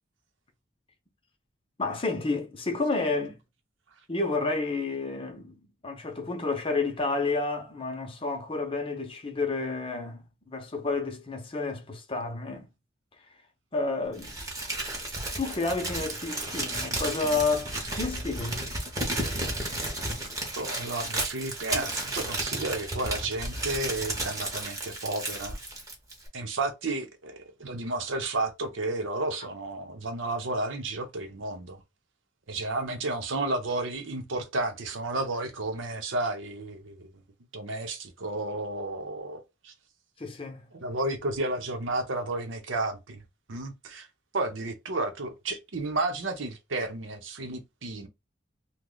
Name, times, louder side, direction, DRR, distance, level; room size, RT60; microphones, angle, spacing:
voice 1, 1.8-3.4 4.1-5.6 5.8-12.7 13.7-14.4 15.4-18.7 40.2-40.6, left 3 dB, 30° left, 0.7 m, -30 dB
Crumpling crinkling, 14.2-26.3, right 1 dB, 20° right, 0.9 m, -33 dB
voice 2, 20.6-25.6 26.3-31.8 32.5-37.1 37.5-39.7 40.7-43.2 43.5-44.1 44.3-48.1, right 2 dB, 80° right, 0.8 m, -32 dB
3.1 x 2.2 x 3.7 m
head